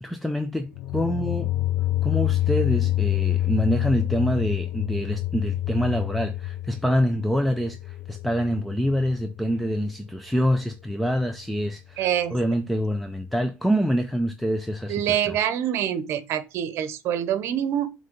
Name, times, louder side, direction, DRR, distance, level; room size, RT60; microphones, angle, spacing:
voice 1, 0.0-1.5 2.0-15.4, equal, ahead, 0.5 m, -26 dB
sound 1, 0.7-9.6, left 15 dB, 75° left, 0.6 m, -27 dB
voice 2, 12.0-12.3 14.9-17.9, right 10 dB, 60° right, 0.9 m, -25 dB
7.7 x 3.3 x 5.2 m
cardioid pair, 145°, 5 cm